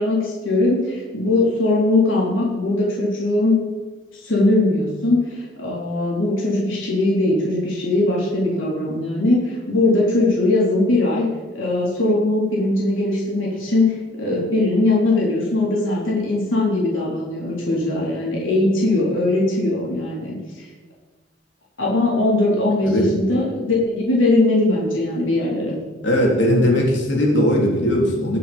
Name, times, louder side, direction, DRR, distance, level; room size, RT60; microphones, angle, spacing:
voice 1, 0.0-3.6 4.2-11.2 11.5-20.4 21.8-25.7, left 2 dB, 85° left, -4 dB, 4.3 m, -20 dB
voice 2, 22.8-23.2 26.0-28.4, equal, 65° left, -1 dB, 3.7 m, -18 dB
20.5 x 6.9 x 5.5 m, 1.3 s
head